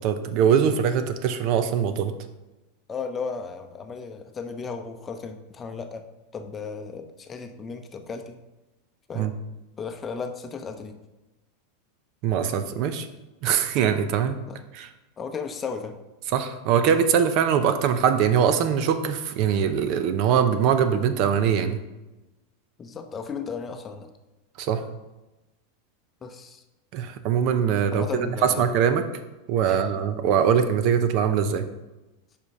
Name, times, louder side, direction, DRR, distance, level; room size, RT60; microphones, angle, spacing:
voice 1, 0.0-2.1 9.1-9.3 12.2-13.1 13.4-14.4 14.7-14.9 16.3-21.8 24.6-24.8 26.9-29.0 29.5-31.7, right 8 dB, 55° right, 10 dB, 0.6 m, -22 dB
voice 2, 2.9-6.1 6.3-8.4 9.1-9.3 9.8-11.0 14.5-14.6 15.2-16.0 22.8-24.1 26.2-26.6 27.9-28.7 29.6-29.9, left 5 dB, 25° left, 6 dB, 0.7 m, -35 dB
5.2 x 5.1 x 5.4 m, 1.1 s
supercardioid pair, 120°, 0 cm